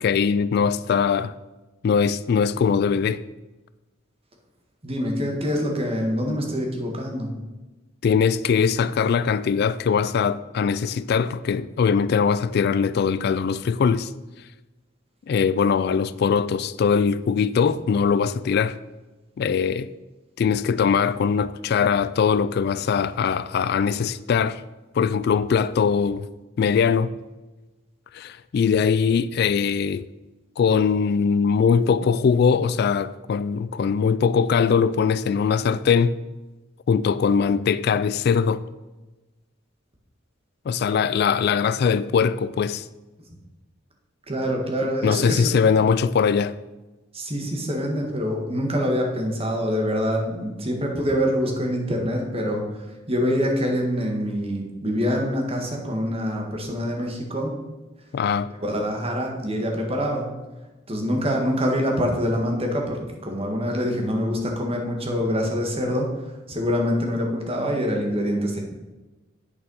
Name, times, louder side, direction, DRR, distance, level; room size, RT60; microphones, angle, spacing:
voice 1, 0.0-1.3 1.8-3.2 8.0-14.1 15.3-18.8 19.4-19.9 20.4-24.6 24.9-26.3 26.6-27.1 28.1-30.1 30.6-36.1 36.9-38.6 40.7-42.8 45.0-46.6 58.1-58.5, left 6 dB, 55° left, 0.3 m, -21 dB
voice 2, 4.8-7.3 44.3-45.5 47.1-57.5 58.6-60.3 60.9-68.6, equal, 30° right, 1.7 m, -25 dB
8.6 x 6.8 x 5.5 m
head